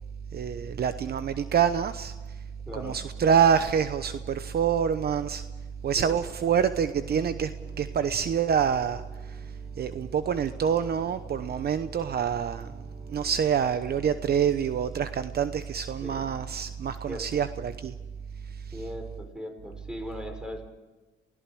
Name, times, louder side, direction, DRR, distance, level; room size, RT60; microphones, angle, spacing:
voice 1, 0.3-2.1 2.7-5.4 5.8-7.5 7.8-9.0 9.3-9.4 9.8-12.7 13.1-17.9, right 7 dB, 55° right, 11 dB, 0.9 m, -26 dB
voice 2, 2.7-3.0 5.9-6.2 15.8-16.3 17.1-17.5 18.7-20.7, equal, 5° right, 5 dB, 4.8 m, -39 dB
sound 1, 6.9-14.5, right 4 dB, 85° right, 4.5 m, -51 dB
28.0 x 17.0 x 6.2 m, 1.2 s
cardioid pair, 90°, 20 cm